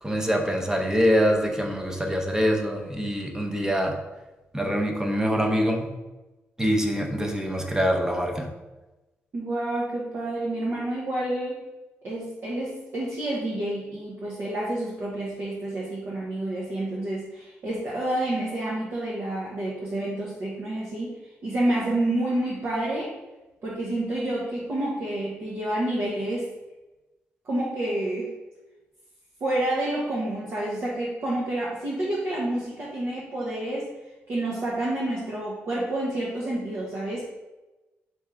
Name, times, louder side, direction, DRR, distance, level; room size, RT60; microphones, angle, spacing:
voice 1, 0.0-4.0 4.5-5.9 6.6-8.5, equal, 10° right, 2 dB, 0.8 m, -24 dB
voice 2, 9.3-11.6 12.0-21.1 21.4-23.1 23.6-26.5 27.4-28.3 29.4-33.9 34.3-37.2, right 1 dB, 55° right, -5 dB, 1.0 m, -29 dB
4.4 x 3.3 x 3.6 m, 1.1 s
cardioid pair, 85°, 5 cm